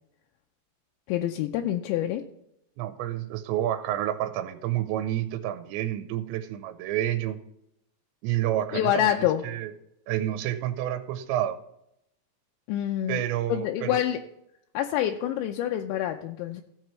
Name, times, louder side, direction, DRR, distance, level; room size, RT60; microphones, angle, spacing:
voice 1, 1.1-2.2 8.7-9.4 12.7-13.2 13.5-14.2 14.7-16.6, left 11 dB, 80° left, 4 dB, 2.7 m, -26 dB
voice 2, 2.8-7.4 8.2-9.7 10.1-11.6 13.1-14.0, right 12 dB, 85° right, 8 dB, 2.7 m, -29 dB
15.5 x 7.6 x 3.1 m, 0.77 s
omnidirectional pair, 5.6 m